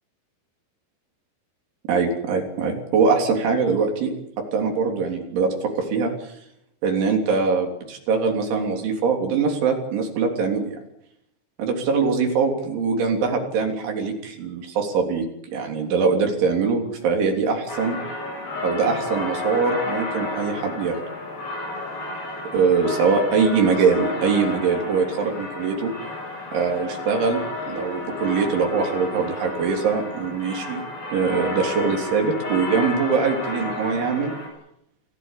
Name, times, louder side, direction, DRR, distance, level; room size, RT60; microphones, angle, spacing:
voice 1, 1.9-4.1 4.5-5.5 5.8-6.3 6.8-10.8 11.6-18.0 18.6-21.0 22.5-25.9 26.5-30.8 31.1-34.3, right 5 dB, 75° right, 2 dB, 5.8 m, -22 dB
sound 1, 17.7-34.5, left 2 dB, 60° left, 9.7 m, -31 dB
28.0 x 16.5 x 8.4 m, 0.76 s
omnidirectional pair, 5.5 m